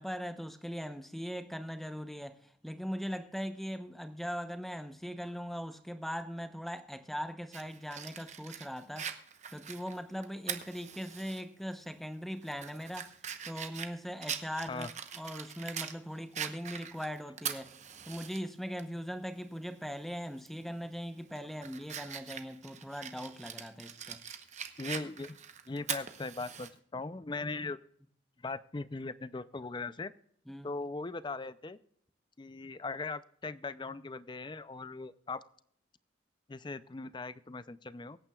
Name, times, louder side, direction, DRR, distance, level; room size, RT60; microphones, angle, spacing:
voice 1, 0.0-9.1 9.5-13.1 13.4-14.9 15.1-17.7 18.1-24.2 30.5-30.7, equal, ahead, 9 dB, 0.7 m, -40 dB
Fire, 7.5-11.4 11.8-11.9 12.4-16.0 16.3-18.4 18.8-18.9 20.4-20.6 21.1-26.7, right 8 dB, 40° right, 0.9 m, -42 dB
voice 2, 24.8-25.4 25.7-27.8 28.4-30.1 30.6-31.8 32.4-35.4 36.5-38.2, left 3 dB, 25° left, 15 dB, 0.4 m, -39 dB
23.5 x 8.9 x 2.3 m, 0.66 s
head